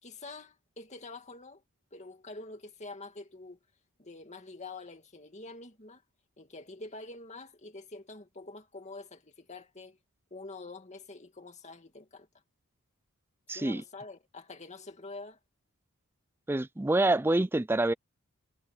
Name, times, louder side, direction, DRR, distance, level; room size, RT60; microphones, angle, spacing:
voice 1, 0.0-1.6 1.9-3.6 4.0-6.0 6.4-10.0 10.3-12.3 13.5-15.4, left 3 dB, 30° left, 2.4 m, -46 dB
voice 2, 13.5-13.8 16.5-17.9, right 2 dB, 10° right, 0.4 m, -26 dB
head